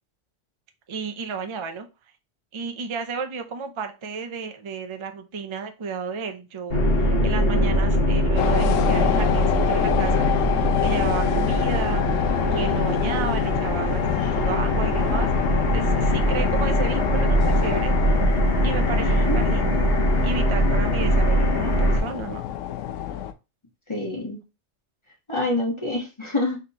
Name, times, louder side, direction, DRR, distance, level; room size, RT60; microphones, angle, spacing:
voice 1, 0.9-1.9 2.5-10.3 10.8-12.0 12.5-14.0 14.3-15.3 15.7-17.9 18.6-22.4, right 5 dB, 35° right, 6 dB, 0.5 m, -32 dB
sound 1, 6.7-22.0, equal, 50° left, 1.4 m, -22 dB
sound 2, 8.3-23.3, left 10 dB, 85° left, 0.9 m, -27 dB
voice 2, 18.9-19.5 23.9-24.4 25.3-26.6, left 2 dB, 25° left, -1 dB, 1.3 m, -27 dB
4.5 x 3.8 x 2.8 m, 0.27 s
omnidirectional pair, 1.3 m